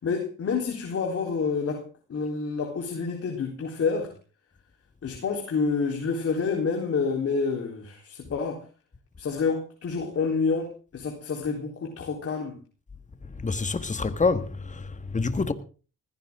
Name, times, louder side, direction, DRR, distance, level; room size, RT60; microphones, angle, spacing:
voice 1, 0.0-1.8 2.1-4.1 5.0-8.6 9.2-12.6, left 5 dB, 50° left, 3.9 m, -28 dB
voice 2, 13.4-15.5, left 4 dB, 25° left, 1.7 m, -27 dB
19.5 x 15.0 x 3.8 m
cardioid pair, 90°, 30 cm